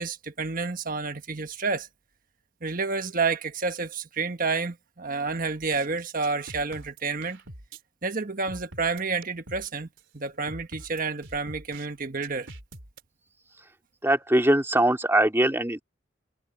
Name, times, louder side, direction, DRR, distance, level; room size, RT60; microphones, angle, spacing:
voice 1, 0.0-1.9 2.6-7.4 8.0-9.9 10.1-12.5, right 4 dB, 45° right, 1.4 m, -29 dB
sound 1, 5.7-5.9 6.2-7.8 8.5-9.7 10.0-10.1 10.5-11.9 12.2-13.0, right 2 dB, 65° right, 3.8 m, -44 dB
voice 2, 14.0-15.8, right 1 dB, 10° right, 2.4 m, -21 dB
head